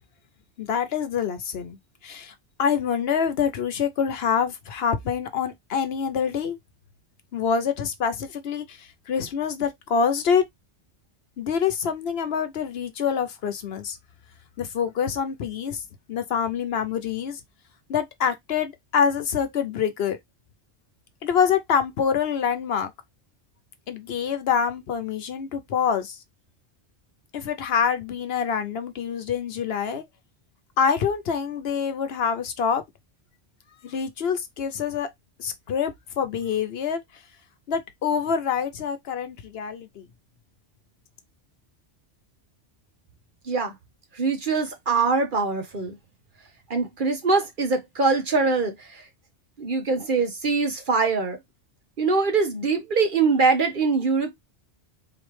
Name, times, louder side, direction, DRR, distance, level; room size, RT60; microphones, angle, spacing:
voice 1, 0.6-2.3 2.6-6.6 7.3-10.4 11.4-14.0 14.6-15.8 16.1-17.4 17.9-20.2 21.2-22.9 23.9-26.2 27.3-30.0 30.8-32.8 33.8-35.1 35.4-37.0 37.7-40.1, left 7 dB, 65° left, 0.9 m, -26 dB
voice 2, 44.1-46.0 46.7-49.0 49.6-51.4 52.0-54.3, right 4 dB, 50° right, 1.0 m, -23 dB
3.9 x 3.1 x 3.1 m
omnidirectional pair, 1.2 m